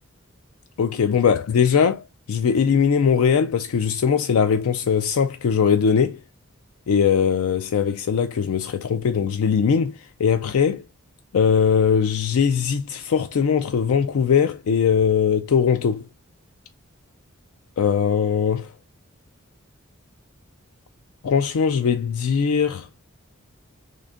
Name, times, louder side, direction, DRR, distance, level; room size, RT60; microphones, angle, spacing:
voice 1, 0.8-2.0 2.3-6.2 6.9-10.8 11.3-16.0 17.8-18.6 21.2-22.9, left 7 dB, 85° left, 0.4 m, -20 dB
3.7 x 2.6 x 3.6 m
head